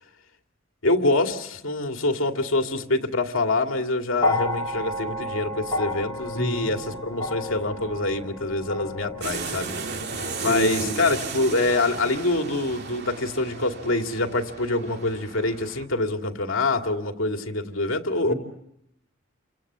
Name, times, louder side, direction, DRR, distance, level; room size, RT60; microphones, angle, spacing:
voice 1, 0.8-9.7 10.4-18.3, left 2 dB, 80° left, 4 dB, 2.4 m, -25 dB
sound 1, 4.2-12.5 13.6-13.7, left 2 dB, 20° left, 3.7 m, -32 dB
voice 2, 6.3-6.7 10.5-11.0 18.2-18.3, equal, 55° left, 1 dB, 3.4 m, -28 dB
sound 2, 9.2-15.8, right 4 dB, 55° right, 2.5 m, -35 dB
29.5 x 26.0 x 7.4 m, 0.79 s
head